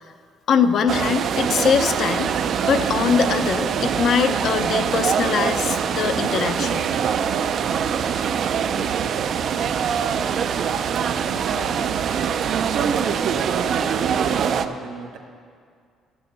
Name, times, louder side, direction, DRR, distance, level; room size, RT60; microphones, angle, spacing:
voice 1, 0.5-2.3 2.6-6.9, left 6 dB, 50° left, 9 dB, 0.6 m, -22 dB
sound 1, 0.9-14.7, right 7 dB, 50° right, 0.4 m, -23 dB
voice 2, 11.2-11.9 12.4-15.2, right 4 dB, 70° right, 3 dB, 1.5 m, -34 dB
12.5 x 7.0 x 6.6 m, 2.2 s
cardioid pair, 145°, 0 cm